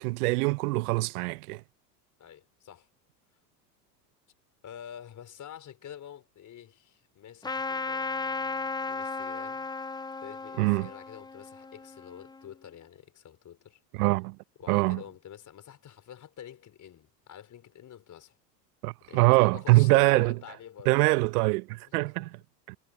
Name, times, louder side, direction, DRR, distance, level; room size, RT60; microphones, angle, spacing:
voice 1, 0.0-1.6 10.6-10.9 13.9-14.4 14.7-15.0 18.8-20.3 20.9-22.3 22.7-22.8, right 23 dB, 65° right, 0.8 m, -24 dB
voice 2, 2.2-2.9 4.6-9.7 10.2-13.8 14.6-18.4 19.1-21.2 21.9-22.3, left 9 dB, 35° left, 4.7 m, -48 dB
Trumpet, 7.4-12.5, left 3 dB, 10° left, 0.8 m, -35 dB
hypercardioid pair, 90°, 48 cm